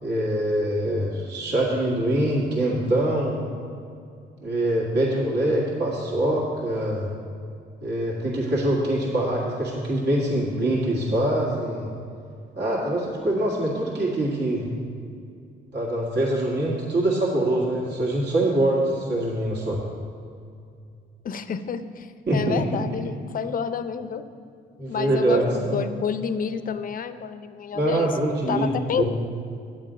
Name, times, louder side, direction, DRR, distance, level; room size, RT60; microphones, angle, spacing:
voice 1, 0.0-3.4 4.4-7.1 7.8-11.9 12.5-14.7 15.7-19.8 22.3-22.6 24.8-25.8 27.7-29.0, right 1 dB, 60° right, -4 dB, 1.9 m, -24 dB
voice 2, 21.2-24.2 24.9-28.1 28.5-29.0, left 7 dB, 45° left, 11 dB, 0.6 m, -29 dB
9.3 x 7.7 x 5.1 m, 2.4 s
cardioid pair, 90°, 20 cm